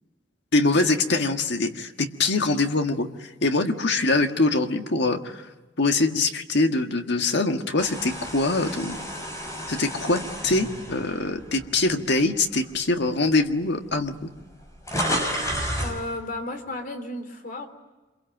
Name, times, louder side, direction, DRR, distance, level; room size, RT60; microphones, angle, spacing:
voice 1, 0.5-5.4 5.8-9.0 9.7-14.3, left 2 dB, 65° left, 6 dB, 1.7 m, -23 dB
sound 1, 7.8-12.0 12.5-12.7 13.6-13.7 13.9-16.0, equal, 15° left, 5.6 m, -31 dB
voice 2, 15.8-17.7, left 2 dB, 45° left, 6 dB, 3.3 m, -33 dB
27.0 x 23.0 x 9.1 m, 1.2 s
head